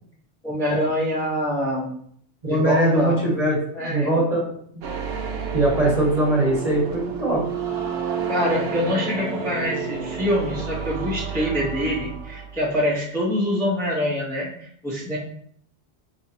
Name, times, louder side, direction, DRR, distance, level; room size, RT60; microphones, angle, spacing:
voice 1, 0.4-1.9 2.5-3.2 3.7-4.1 8.3-14.5 14.8-15.2, left 1 dB, 5° left, -7 dB, 0.9 m, -25 dB
voice 2, 2.4-4.8 5.5-7.4, right 1 dB, 35° right, -4 dB, 1.4 m, -21 dB
sound 1, 4.8-12.7, right 6 dB, 65° right, 0.8 m, -30 dB
5.2 x 3.2 x 2.9 m, 0.63 s
omnidirectional pair, 1.2 m